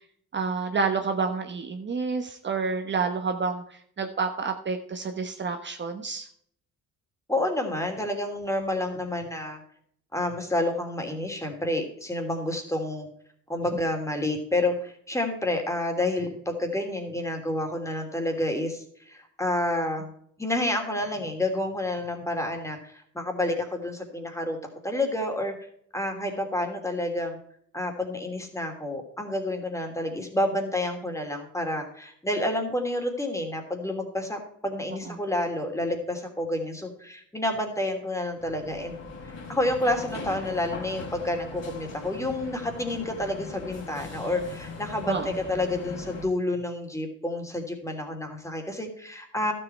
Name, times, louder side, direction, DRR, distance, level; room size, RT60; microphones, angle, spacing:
voice 1, 0.3-6.3 35.1-35.2 45.1-45.3, right 4 dB, 35° right, 5 dB, 1.2 m, -29 dB
voice 2, 7.3-9.6 10.1-13.1 13.5-20.1 20.4-24.6 24.8-25.5 25.9-27.4 27.7-39.0 39.2-49.5, left 1 dB, 10° left, 4 dB, 3.0 m, -29 dB
sound 1, 38.2-46.2, left 3 dB, 55° left, 4.3 m, -40 dB
12.5 x 7.8 x 4.5 m, 0.64 s
cardioid pair, 90°, 30 cm